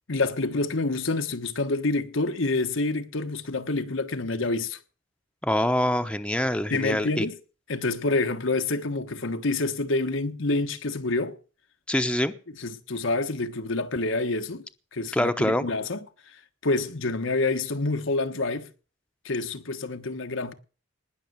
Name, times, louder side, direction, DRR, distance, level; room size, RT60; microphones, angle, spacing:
voice 1, 0.1-4.8 6.7-7.3 7.7-11.4 12.6-14.6 14.9-16.0 16.6-18.7 19.2-20.5, left 2 dB, 90° left, 1.4 m, -27 dB
voice 2, 5.4-7.3 11.9-12.3 15.1-15.7, left 1 dB, 5° left, 0.9 m, -25 dB
19.5 x 6.5 x 8.1 m
head